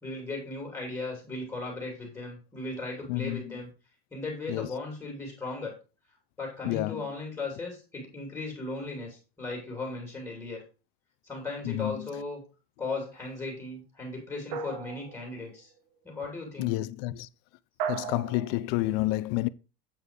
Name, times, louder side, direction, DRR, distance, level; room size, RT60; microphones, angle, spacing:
voice 1, 0.0-3.7 4.1-5.8 6.4-10.6 11.2-12.4 12.8-15.7 16.0-16.7, left 3 dB, 10° left, 2.7 m, -37 dB
voice 2, 3.1-3.6 4.5-4.7 6.6-7.0 11.6-12.1 16.6-17.3 17.9-19.5, left 18 dB, 50° left, 0.5 m, -30 dB
sound 1, 14.5-15.5 17.8-18.6, right 7 dB, 60° right, 1.1 m, -35 dB
8.5 x 4.6 x 5.0 m
supercardioid pair, 160°, 32 cm